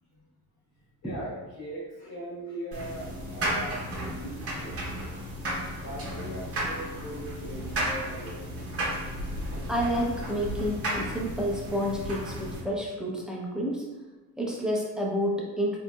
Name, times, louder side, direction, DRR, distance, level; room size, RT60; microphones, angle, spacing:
voice 1, 1.0-4.8 5.8-8.6, right 1 dB, 85° left, -7 dB, 1.2 m, -39 dB
sound 1, 2.7-12.6, right 1 dB, 40° right, 0.8 m, -33 dB
voice 2, 9.7-13.8 14.4-15.8, equal, ahead, -3 dB, 0.5 m, -29 dB
4.0 x 2.8 x 2.2 m, 1.2 s
cardioid pair, 160°, 35 cm